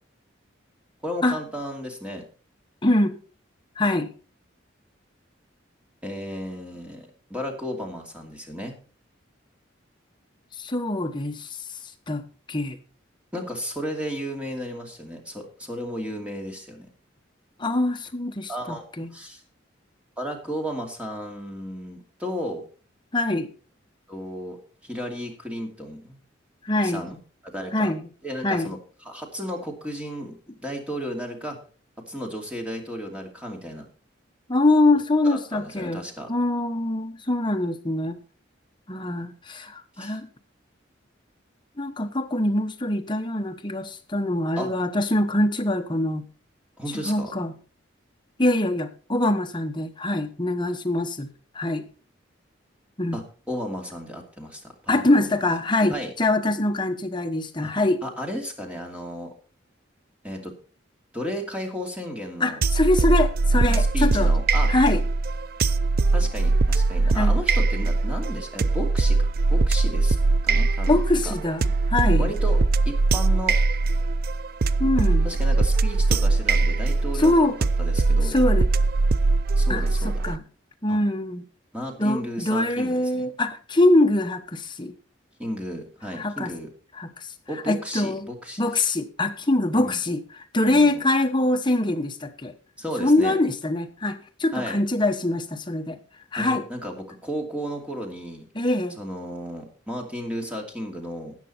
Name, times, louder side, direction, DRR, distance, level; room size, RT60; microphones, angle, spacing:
voice 1, 1.0-2.2 6.0-8.8 13.3-16.9 18.5-18.8 19.1-19.4 20.2-22.6 24.1-24.6 24.8-26.2 26.8-27.2 27.4-27.9 28.2-28.8 29.0-31.6 32.1-33.9 35.2-36.3 40.0-40.2 44.6-44.7 46.8-47.3 53.1-55.3 55.9-56.1 57.6-57.7 58.0-59.3 60.2-60.5 61.1-62.6 63.5-64.7 66.1-70.2 70.4-71.0 71.3-71.4 72.2-72.6 72.9-73.6 75.2-77.3 77.8-78.4 79.6-80.2 80.9-81.0 81.7-83.3 85.4-86.7 87.5-88.6 89.7-90.0 90.6-90.9 92.8-93.4 94.5-94.8 96.4-98.5 99.0-101.4, equal, 5° right, 2.5 m, -34 dB
voice 2, 2.8-3.2 3.8-4.1 10.6-11.6 12.1-12.8 17.6-19.1 23.1-23.5 26.6-27.1 27.7-28.1 28.4-28.7 34.5-36.0 36.3-38.2 38.9-40.3 41.8-46.3 47.0-47.5 48.4-51.3 51.5-51.8 53.0-53.2 54.9-58.0 62.4-64.3 64.7-65.0 67.1-67.3 70.9-72.3 74.8-75.3 77.2-77.6 78.2-78.7 79.7-80.4 80.8-81.4 82.0-84.9 86.1-86.5 86.9-87.3 87.7-88.3 88.6-90.2 90.5-92.5 93.0-96.0 96.3-96.6 98.5-99.0, left 2 dB, 25° left, 1.1 m, -23 dB
sound 1, 62.6-80.4, right 3 dB, 50° right, 0.4 m, -21 dB
13.5 x 9.1 x 4.3 m
head